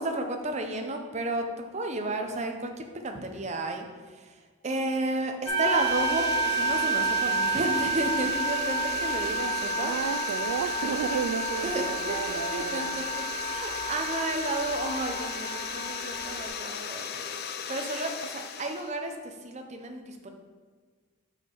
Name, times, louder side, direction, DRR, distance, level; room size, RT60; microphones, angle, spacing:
voice 1, 0.0-4.4 4.6-9.9 11.6-13.0 13.4-17.2 17.7-20.3, right 2 dB, 30° right, 4 dB, 0.7 m, -32 dB
sound 1, 5.5-16.5, right 4 dB, 85° left, 1.4 m, -30 dB
sound 2, 5.5-19.0, left 7 dB, 50° left, 0.4 m, -37 dB
voice 2, 9.8-12.9, right 6 dB, 90° right, 6 dB, 0.3 m, -32 dB
5.6 x 5.4 x 4.5 m, 1.5 s
head